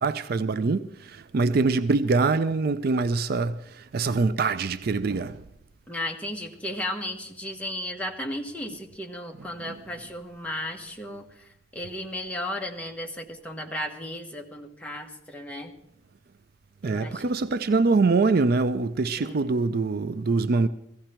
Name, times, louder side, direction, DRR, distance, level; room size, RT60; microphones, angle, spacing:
voice 1, 0.0-5.4 16.8-20.7, right 3 dB, 55° right, 0.4 m, -24 dB
voice 2, 5.9-15.7 16.8-17.2 19.2-19.5, left 1 dB, 5° left, 1.3 m, -35 dB
16.0 x 16.0 x 4.4 m
head